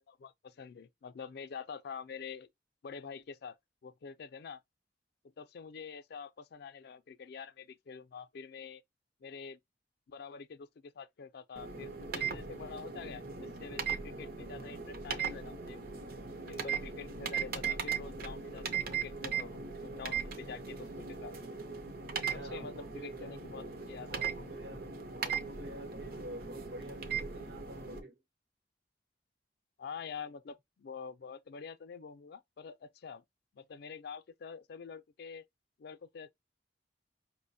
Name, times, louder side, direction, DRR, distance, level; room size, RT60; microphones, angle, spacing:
voice 1, 0.1-2.5 2.8-3.6 3.8-4.6 5.4-8.8 9.2-9.6 10.1-15.8 16.3-21.3 22.5-24.5 29.8-33.2 33.5-35.4 35.8-36.3, left 6 dB, 60° left, 0.4 m, -46 dB
sound 1, 11.6-28.0, right 6 dB, 60° right, 0.6 m, -39 dB
voice 2, 22.2-23.3 24.1-28.2, right 1 dB, 75° right, 1.0 m, -48 dB
5.1 x 2.1 x 2.6 m
head